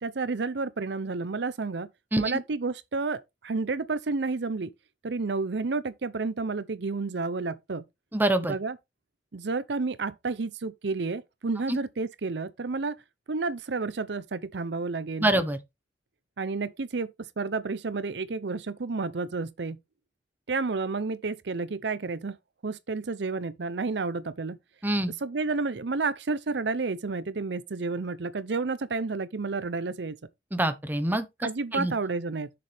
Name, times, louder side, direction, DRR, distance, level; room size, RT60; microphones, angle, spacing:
voice 1, 0.0-1.9 2.2-4.7 5.0-7.8 8.4-8.8 9.3-13.0 13.3-15.3 16.4-19.8 20.5-22.4 22.6-24.6 25.2-30.2 31.4-32.5, right 3 dB, 65° right, 0.6 m, -30 dB
voice 2, 8.1-8.5 11.7-11.8 15.2-15.6 24.8-25.1 30.5-31.3 31.7-31.9, right 1 dB, 10° right, 1.0 m, -25 dB
7.4 x 6.9 x 3.4 m
head